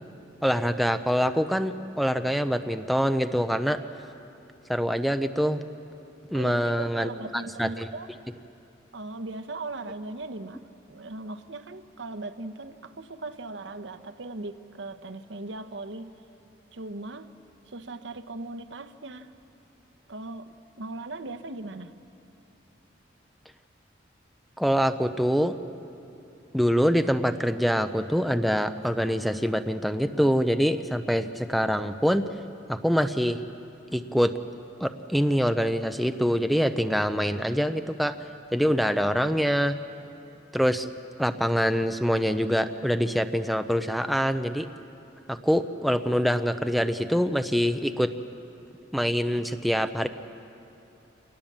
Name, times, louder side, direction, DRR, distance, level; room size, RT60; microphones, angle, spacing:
voice 1, 0.4-3.8 4.7-5.6 6.3-7.9 24.6-25.6 26.5-32.2 32.7-33.4 33.9-34.3 34.8-38.1 38.5-39.8 40.5-40.9 41.2-44.7 45.3-48.1 48.9-50.1, equal, ahead, 9 dB, 0.6 m, -25 dB
voice 2, 6.3-8.1 8.9-10.6 10.9-16.1 16.7-17.3 17.7-19.3 20.1-21.9, right 2 dB, 70° right, 11 dB, 1.0 m, -38 dB
26.5 x 19.5 x 7.4 m, 2.8 s
head